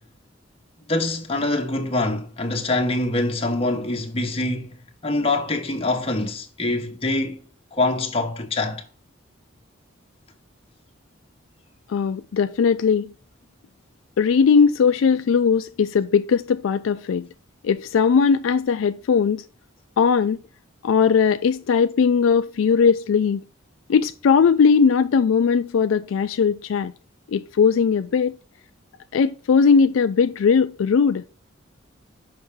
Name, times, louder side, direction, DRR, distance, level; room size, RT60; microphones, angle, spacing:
voice 1, 0.9-4.7 5.0-7.4 7.7-8.8, left 2 dB, 30° left, 1.0 m, -24 dB
voice 2, 11.9-13.1 14.2-17.3 17.6-19.4 20.0-20.4 20.8-23.4 23.9-26.9 27.3-28.4 29.1-31.2, left 6 dB, 75° left, 0.4 m, -19 dB
6.2 x 5.5 x 3.5 m
head